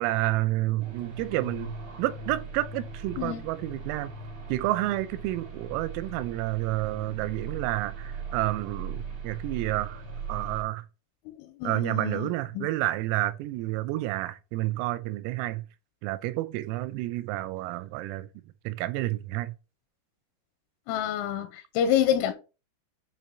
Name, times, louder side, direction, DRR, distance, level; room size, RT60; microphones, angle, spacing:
voice 1, 0.0-1.7 2.0-4.1 4.5-10.0 10.3-10.8 11.6-15.6 16.0-18.3 18.7-19.5, right 17 dB, 90° right, 3.3 m, -30 dB
sound 1, 0.8-10.6, right 4 dB, 60° right, 1.3 m, -39 dB
voice 2, 11.6-12.3 12.5-12.7 20.9-22.3, left 10 dB, 90° left, 3.3 m, -27 dB
8.5 x 2.9 x 4.1 m
omnidirectional pair, 5.9 m